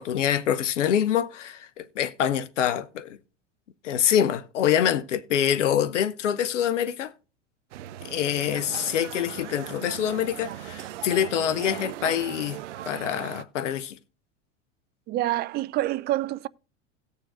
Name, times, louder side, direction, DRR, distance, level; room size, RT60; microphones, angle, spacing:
voice 1, 0.0-3.2 3.8-7.1 8.0-12.6 12.9-14.0, left 9 dB, 80° left, 0.8 m, -25 dB
sound 1, 7.7-13.4, right 13 dB, 75° right, 0.6 m, -39 dB
voice 2, 15.1-16.5, right 15 dB, 30° right, 0.3 m, -27 dB
18.0 x 6.8 x 2.5 m
hypercardioid pair, 85°, 36 cm